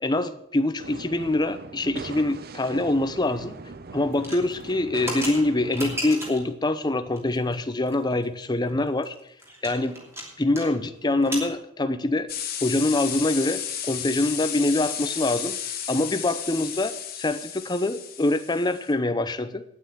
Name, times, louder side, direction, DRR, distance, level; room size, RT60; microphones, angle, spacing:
voice 1, 0.0-3.5 3.9-9.1 9.6-10.0 10.4-12.3 12.6-15.6 15.9-19.6, left 2 dB, 20° left, 11 dB, 0.7 m, -25 dB
sound 1, 0.8-6.0, right 3 dB, 45° right, 0.6 m, -40 dB
sound 2, 4.1-6.5 7.2-7.5 7.9-8.0 8.2-8.3 8.7-10.7 10.9-11.5, equal, 10° right, 2.9 m, -35 dB
sound 3, 12.3-18.9, left 9 dB, 45° left, 1.6 m, -33 dB
9.6 x 9.0 x 7.8 m, 0.73 s
head